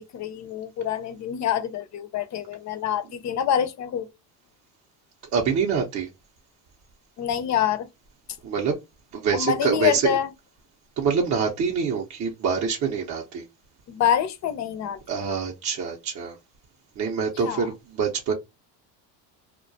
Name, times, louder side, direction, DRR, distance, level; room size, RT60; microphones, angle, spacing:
voice 1, 0.0-4.1 7.2-7.9 9.3-10.3 13.9-15.0 17.4-17.7, left 9 dB, 35° left, 0.5 m, -26 dB
voice 2, 5.3-6.1 8.4-8.8 9.1-10.2 11.0-13.4 15.1-16.4 17.0-18.3, right 6 dB, 35° right, 0.6 m, -25 dB
2.3 x 2.2 x 2.5 m
supercardioid pair, 100°, 49 cm